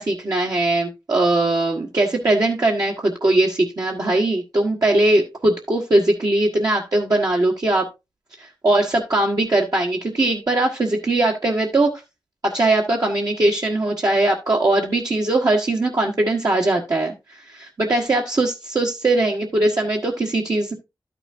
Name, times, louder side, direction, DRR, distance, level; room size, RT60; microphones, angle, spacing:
voice 1, 0.0-7.8 8.4-11.9 12.4-17.1 17.5-20.7, right 2 dB, 55° right, -1 dB, 1.4 m, -20 dB
12.5 x 6.1 x 2.6 m, 0.24 s
wide cardioid pair, 60°, 8 cm